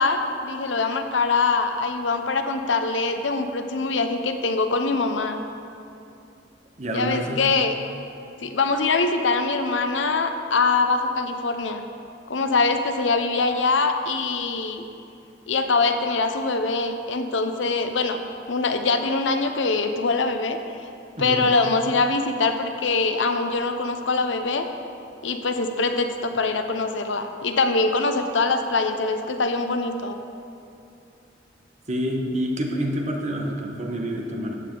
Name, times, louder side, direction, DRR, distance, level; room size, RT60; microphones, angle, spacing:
voice 1, 0.0-5.4 6.9-7.7 8.4-11.9 12.3-14.8 15.5-18.2 18.5-20.6 21.2-24.6 25.2-30.2, left 3 dB, 80° left, 7 dB, 0.8 m, -23 dB
voice 2, 6.8-7.4 21.2-21.5 31.9-34.6, equal, 40° right, 1 dB, 1.2 m, -27 dB
14.0 x 8.6 x 3.9 m, 2.6 s
head